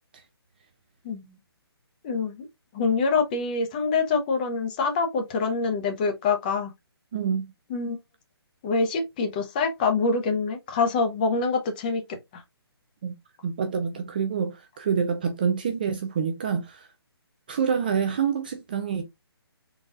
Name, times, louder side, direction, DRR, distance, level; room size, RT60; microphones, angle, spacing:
voice 1, 1.0-1.4 2.0-2.5 2.7-6.7 7.7-8.0 8.6-12.0 12.3-12.4, left 4 dB, 20° left, 0.6 m, -25 dB
voice 2, 7.1-7.5 13.0-13.1 13.4-16.9 17.5-19.0, right 6 dB, 20° right, 0.3 m, -27 dB
4.0 x 2.3 x 3.7 m
hypercardioid pair, 165°, 14 cm